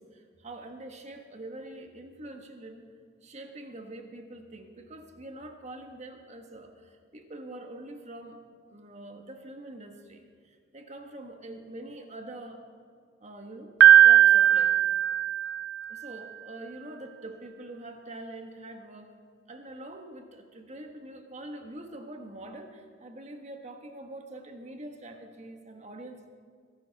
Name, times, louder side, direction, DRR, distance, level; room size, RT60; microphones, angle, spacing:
voice 1, 0.0-2.8 3.2-8.4 8.7-12.6 13.2-13.7 14.0-14.8 15.9-19.1 19.5-26.3, right 1 dB, 40° right, 4 dB, 1.4 m, -44 dB
Piano, 13.8-15.9, right 10 dB, 70° right, 0.3 m, -18 dB
22.5 x 11.5 x 4.1 m, 2.1 s
head